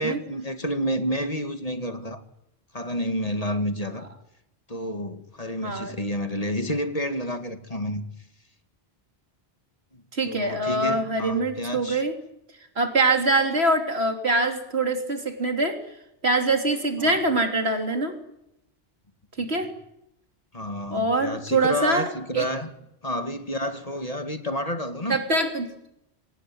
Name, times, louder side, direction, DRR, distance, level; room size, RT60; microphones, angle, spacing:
voice 1, 0.0-2.2 2.7-4.1 4.7-8.0 9.9-12.0 17.0-17.2 20.5-22.7 23.0-25.2, equal, 35° left, 8 dB, 2.2 m, -30 dB
voice 2, 5.6-5.9 10.1-12.2 12.8-15.8 16.2-18.2 19.4-19.7 20.9-22.5 25.1-25.8, right 2 dB, 75° right, 5 dB, 3.5 m, -24 dB
25.0 x 18.5 x 9.5 m, 0.81 s
omnidirectional pair, 1.1 m